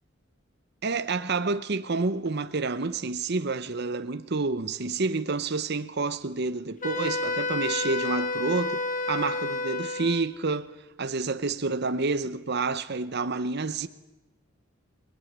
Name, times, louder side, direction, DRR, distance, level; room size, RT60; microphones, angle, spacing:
voice 1, 0.8-10.7 11.0-13.9, right 3 dB, 55° right, 0.9 m, -29 dB
Wind instrument woodwind instrument, 6.8-10.3, left 3 dB, 40° left, 2.2 m, -30 dB
28.5 x 20.0 x 9.4 m
head